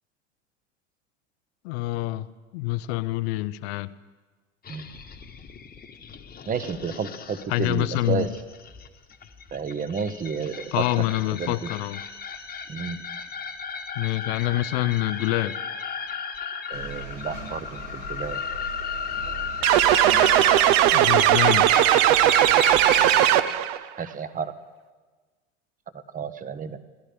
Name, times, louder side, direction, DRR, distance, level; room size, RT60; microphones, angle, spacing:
voice 1, 1.6-3.9 7.5-8.3 10.7-12.0 14.0-15.6 20.9-21.7, left 17 dB, 55° left, 16 dB, 0.6 m, -26 dB
sound 1, 4.6-23.6, left 7 dB, 25° left, 1.2 m, -35 dB
voice 2, 6.5-8.3 9.5-10.8 11.4-11.5 12.7-13.0 16.7-18.4 24.0-24.5 26.1-26.8, right 6 dB, 20° right, 13 dB, 0.8 m, -31 dB
sound 2, 16.7-23.2, right 4 dB, 80° right, 3.7 m, -40 dB
sound 3, 19.6-23.8, right 12 dB, 55° right, 0.6 m, -18 dB
19.5 x 12.0 x 3.4 m, 1.4 s
hypercardioid pair, 80°, 37 cm